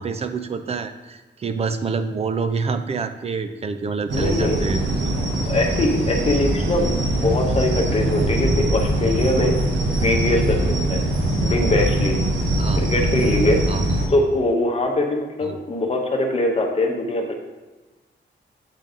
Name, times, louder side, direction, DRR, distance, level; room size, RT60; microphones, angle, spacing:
voice 1, 0.0-5.2 12.6-12.9 13.7-13.9 15.4-15.5, right 4 dB, 35° right, 8 dB, 0.4 m, -27 dB
voice 2, 4.1-4.6 5.2-9.5 9.9-11.0 11.4-12.2 12.8-13.6 14.1-17.3, left 2 dB, 30° left, 1 dB, 0.9 m, -22 dB
sound 1, 4.1-14.1, right 1 dB, 75° right, 1.0 m, -22 dB
8.1 x 3.9 x 3.7 m, 1.2 s
wide cardioid pair, 180°, 19 cm